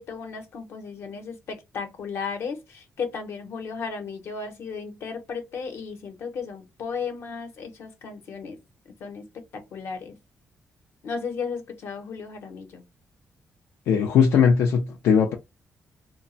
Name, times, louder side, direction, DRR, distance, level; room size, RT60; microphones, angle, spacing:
voice 1, 0.0-8.6 9.0-10.2 11.0-12.8, left 5 dB, 70° left, 0.8 m, -35 dB
voice 2, 13.9-15.3, left 6 dB, 90° left, 0.4 m, -19 dB
2.1 x 2.0 x 3.8 m
cardioid pair, 120°, 5 cm